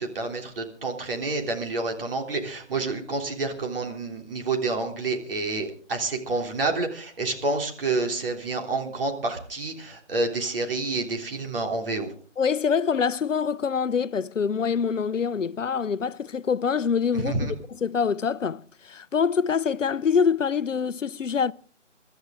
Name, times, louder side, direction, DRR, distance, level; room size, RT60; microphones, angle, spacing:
voice 1, 0.0-12.1 17.1-17.5, right 3 dB, 50° right, 3.4 m, -28 dB
voice 2, 12.4-17.3 17.8-21.5, left 6 dB, 80° left, 0.7 m, -25 dB
25.0 x 13.0 x 3.7 m
figure-of-eight pair, 155°, 37 cm